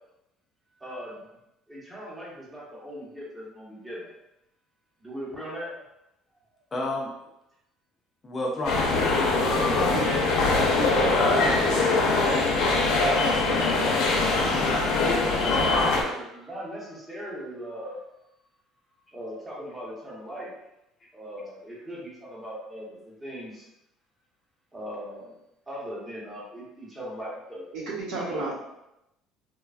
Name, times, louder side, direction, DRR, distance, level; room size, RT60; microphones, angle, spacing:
voice 1, 0.8-1.3 1.7-4.1 5.0-5.7 13.0-13.8 14.0-14.2 15.2-18.0 19.1-20.5 21.1-23.6 24.7-25.3 25.7-27.7 28.1-28.5, equal, 10° right, -6 dB, 0.8 m, -38 dB
voice 2, 6.7-7.1 8.2-9.8, left 1 dB, 20° left, -1 dB, 0.3 m, -32 dB
sound 1, 8.6-16.0, left 3 dB, 70° left, 0.6 m, -22 dB
voice 3, 10.5-11.0 11.5-11.7 27.7-28.5, right 2 dB, 65° right, -5 dB, 0.9 m, -33 dB
3.1 x 2.2 x 2.3 m, 0.87 s
cardioid pair, 155°, 0 cm